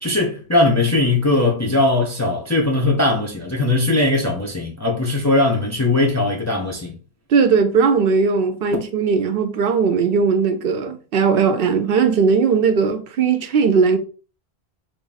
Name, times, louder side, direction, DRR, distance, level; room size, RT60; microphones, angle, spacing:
voice 1, 0.0-7.0, left 2 dB, 25° left, 0.4 m, -19 dB
voice 2, 7.3-14.0, right 5 dB, 65° right, 0.7 m, -18 dB
3.4 x 2.4 x 3.9 m
omnidirectional pair, 1.1 m